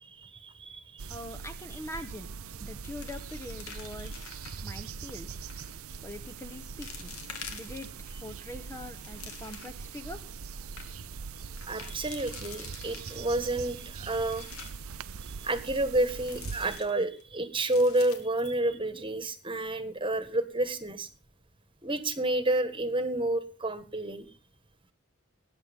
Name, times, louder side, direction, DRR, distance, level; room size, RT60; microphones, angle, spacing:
voice 1, 0.0-1.1 11.6-14.7 15.4-21.1 21.8-24.3, right 1 dB, 25° right, 11 dB, 1.6 m, -30 dB
sound 1, 1.0-16.8, right 5 dB, 85° right, 0.7 m, -42 dB
voice 2, 1.1-2.3 2.6-4.3 4.6-5.4 6.0-7.1 7.5-7.9 8.2-10.2, left 1 dB, 10° left, 7 dB, 0.9 m, -43 dB
sound 2, 2.0-2.4 2.6-4.7 5.4-5.8 6.3-6.4 6.8-8.1 8.6-9.9 10.3-10.4 10.6-10.9 11.6-13.5 14.0-14.9 16.1-17.2 17.6-19.1 19.4-19.5 20.0-20.2, left 6 dB, 90° left, 2.9 m, -47 dB
20.0 x 10.0 x 3.6 m, 0.36 s
head